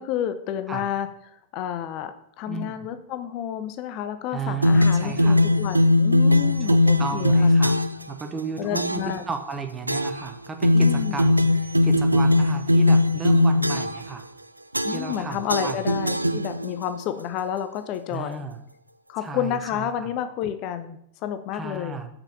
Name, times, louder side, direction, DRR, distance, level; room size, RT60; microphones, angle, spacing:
voice 1, 0.0-7.6 8.6-9.2 10.7-11.2 14.8-18.4 19.1-22.0, left 10 dB, 40° left, 10 dB, 0.6 m, -30 dB
voice 2, 4.3-5.4 6.6-14.3 14.9-15.8 18.1-18.6 19.2-20.1 21.5-22.1, right 4 dB, 15° right, 6 dB, 1.1 m, -34 dB
sound 1, 4.6-8.1 8.7-9.2 9.9-10.3 10.6-14.1 14.7-15.2 15.5-16.8, left 2 dB, 85° right, 0.3 m, -20 dB
5.8 x 5.7 x 6.9 m, 0.73 s
figure-of-eight pair, 90°, 0 cm